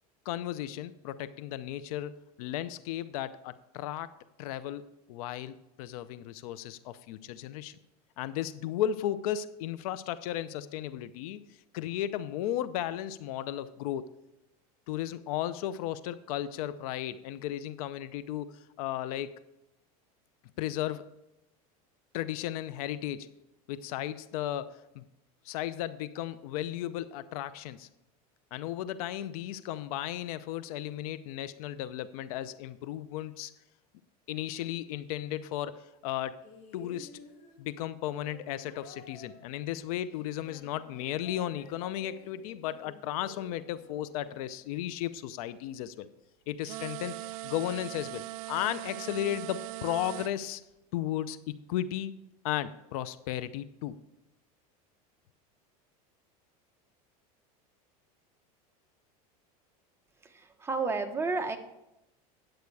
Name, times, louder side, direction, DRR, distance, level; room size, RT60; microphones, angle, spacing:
voice 1, 0.3-4.1 4.4-7.8 8.2-11.4 11.7-14.1 14.9-19.3 20.6-21.0 22.1-23.3 23.7-25.0 25.4-27.9 28.5-33.5 34.3-36.4 36.7-37.2 37.6-46.1 46.5-50.6 50.9-52.1 52.4-54.0, left 12 dB, 75° left, 15 dB, 0.6 m, -35 dB
sound 1, 36.4-44.8 45.8-45.9, left 4 dB, 60° left, 2.0 m, -53 dB
sound 2, 46.6-50.3, right 19 dB, 70° right, 0.4 m, -40 dB
voice 2, 60.2-61.6, right 4 dB, 15° right, 5 dB, 1.1 m, -31 dB
10.5 x 7.9 x 4.7 m, 0.90 s
supercardioid pair, 115°, 19 cm